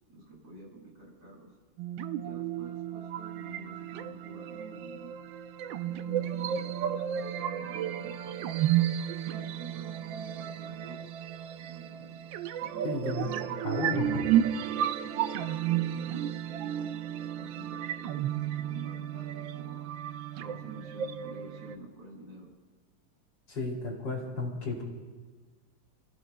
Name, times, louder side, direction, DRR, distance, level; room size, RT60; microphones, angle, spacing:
voice 1, 0.1-1.5 2.2-5.1 5.8-8.5 9.3-11.0 11.6-12.2 12.6-19.8 20.4-22.5, right 3 dB, 65° right, -4 dB, 6.9 m, -48 dB
sound 1, 1.8-21.7, right 10 dB, 90° right, 1.4 m, -32 dB
voice 2, 12.8-13.4 13.6-14.2 23.5-24.8, left 2 dB, 75° left, -1 dB, 3.6 m, -33 dB
28.5 x 16.0 x 2.2 m, 1.4 s
omnidirectional pair, 2.0 m